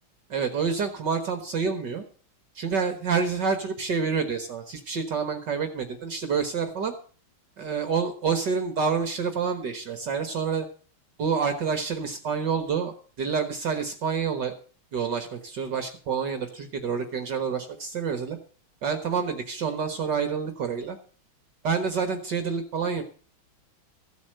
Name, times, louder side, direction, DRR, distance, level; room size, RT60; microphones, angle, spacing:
voice 1, 0.3-2.0 2.6-6.9 7.6-10.7 11.2-14.5 14.9-18.4 18.8-21.0 21.6-23.0, right 6 dB, 55° right, 7 dB, 1.9 m, -28 dB
15.0 x 8.3 x 6.6 m, 0.42 s
omnidirectional pair, 2.3 m